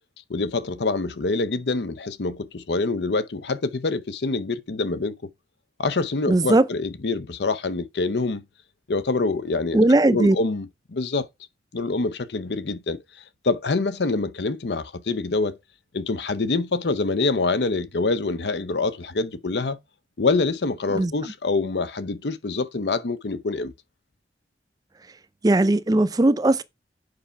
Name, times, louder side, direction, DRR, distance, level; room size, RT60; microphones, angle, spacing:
voice 1, 0.3-5.1 5.8-8.4 8.9-9.8 10.1-11.3 11.7-13.0 13.4-15.6 15.9-19.8 20.2-23.7, left 3 dB, 75° left, 0.7 m, -25 dB
voice 2, 6.3-6.6 9.7-10.4 20.9-21.1 25.4-26.6, right 2 dB, 20° right, 0.4 m, -18 dB
7.8 x 5.6 x 4.5 m
head